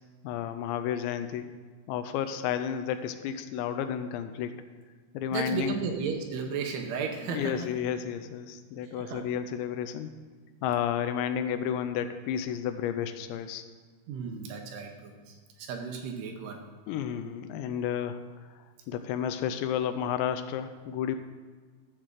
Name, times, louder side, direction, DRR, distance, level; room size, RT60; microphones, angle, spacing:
voice 1, 0.2-1.5 1.9-4.6 5.1-5.8 7.2-10.1 10.6-13.6 16.9-18.2 18.9-21.2, left 9 dB, 85° left, 9 dB, 2.7 m, -31 dB
voice 2, 5.3-7.7 9.0-9.2 14.1-16.6, right 6 dB, 75° right, 3 dB, 2.8 m, -34 dB
12.5 x 4.9 x 7.3 m, 1.5 s
omnidirectional pair, 5.2 m